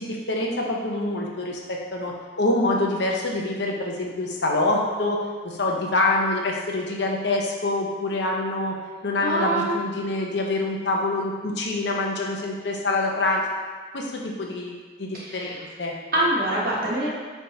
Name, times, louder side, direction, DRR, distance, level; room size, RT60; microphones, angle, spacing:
voice 1, 0.0-5.2 5.4-8.7 9.0-13.4 13.9-15.9, left 2 dB, 75° left, -1 dB, 0.9 m, -26 dB
voice 2, 9.2-9.7 15.1-15.6 16.1-17.1, right 1 dB, 50° right, -6 dB, 1.3 m, -25 dB
9.8 x 3.5 x 2.9 m, 1.5 s
head